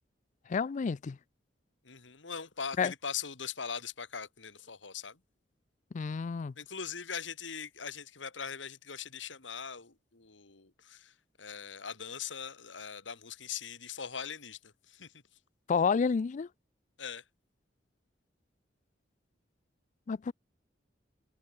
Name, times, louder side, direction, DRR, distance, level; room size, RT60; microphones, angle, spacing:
voice 1, 0.5-1.2 2.8-2.9 5.9-6.5 15.7-16.5 20.1-20.3, left 5 dB, 40° left, 0.4 m, -29 dB
voice 2, 1.8-5.2 6.6-15.2 17.0-17.2, left 7 dB, 85° left, 2.3 m, -41 dB
head